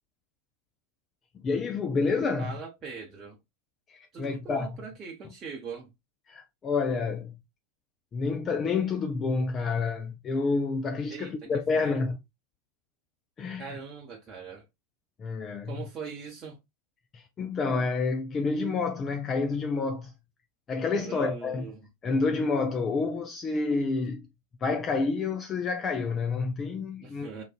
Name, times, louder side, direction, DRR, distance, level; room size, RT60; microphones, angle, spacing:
voice 1, 1.4-2.6 3.9-4.7 6.3-7.4 8.1-12.2 13.4-13.8 15.2-15.9 17.1-20.1 20.7-21.7 22.0-24.2 24.6-27.3, left 4 dB, 25° left, 0.4 m, -29 dB
voice 2, 2.4-3.4 4.1-5.9 11.1-11.3 11.7-12.0 13.6-14.6 15.7-16.6 20.9-21.8 27.0-27.4, right 5 dB, 25° right, 1.0 m, -41 dB
4.0 x 2.5 x 2.4 m
figure-of-eight pair, 90°, 0 cm